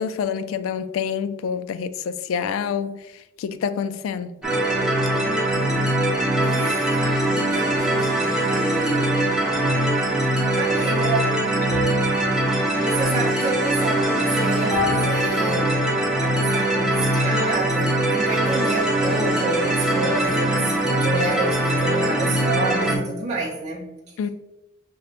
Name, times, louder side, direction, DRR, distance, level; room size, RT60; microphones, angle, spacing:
voice 1, 0.0-3.0 3.4-4.4 24.2-24.3, left 7 dB, 85° left, 0.3 m, -27 dB
sound 1, 4.4-23.0, right 1 dB, 5° right, 1.0 m, -22 dB
voice 2, 6.4-7.1 7.5-9.1 10.5-11.5 12.8-15.9 16.2-23.9, right 3 dB, 35° right, 0.6 m, -29 dB
sound 2, 11.7-14.1 14.7-16.2, left 2 dB, 20° left, 1.1 m, -31 dB
6.5 x 2.2 x 2.4 m
head